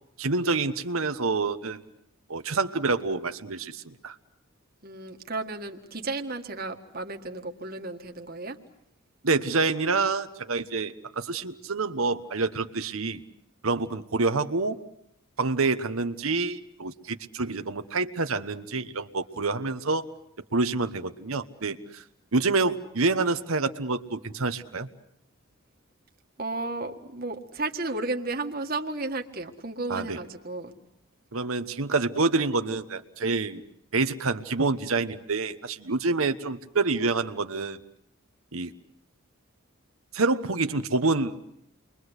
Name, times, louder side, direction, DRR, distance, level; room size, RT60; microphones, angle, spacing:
voice 1, 0.2-1.8 2.3-4.1 9.2-13.2 13.6-14.8 15.4-20.1 20.5-22.0 22.3-24.9 29.9-30.2 31.3-33.6 33.9-37.8 38.5-38.7 40.1-41.4, right 3 dB, 85° right, 8 dB, 1.2 m, -27 dB
voice 2, 4.8-8.6 26.4-30.7, right 2 dB, 45° right, 4 dB, 1.8 m, -33 dB
29.5 x 23.0 x 8.1 m, 0.76 s
head